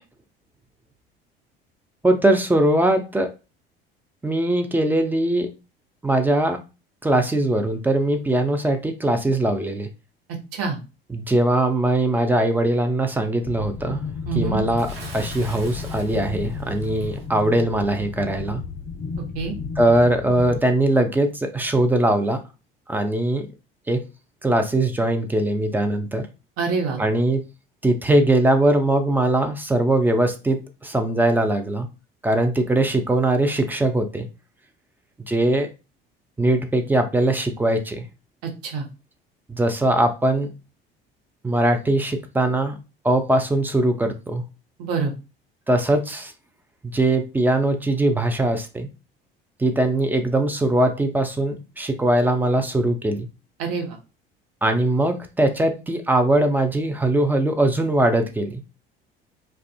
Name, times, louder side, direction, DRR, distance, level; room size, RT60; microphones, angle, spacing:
voice 1, 2.0-3.3 4.2-5.5 6.0-6.6 7.0-9.9 11.1-14.0 14.3-18.6 19.8-22.4 22.9-23.5 23.9-24.0 24.4-26.3 27.0-27.4 27.8-31.9 32.2-34.3 35.3-35.7 36.4-38.1 39.5-40.5 41.4-42.8 43.0-44.4 45.7-46.3 46.8-48.9 49.6-53.3 54.6-58.6, right 1 dB, 5° right, 6 dB, 0.3 m, -21 dB
sound 1, 13.4-20.6, left 5 dB, 40° left, 0.6 m, -33 dB
voice 2, 14.3-14.6 19.3-19.5 26.6-27.0 38.4-38.8 44.8-45.1 53.6-54.0, right 5 dB, 55° right, 3 dB, 0.8 m, -26 dB
Bathtub (filling or washing) / Splash splatter, 14.8-17.3, right 3 dB, 90° right, 0.5 m, -42 dB
2.4 x 2.2 x 2.3 m, 0.30 s
figure-of-eight pair, 60°, 29 cm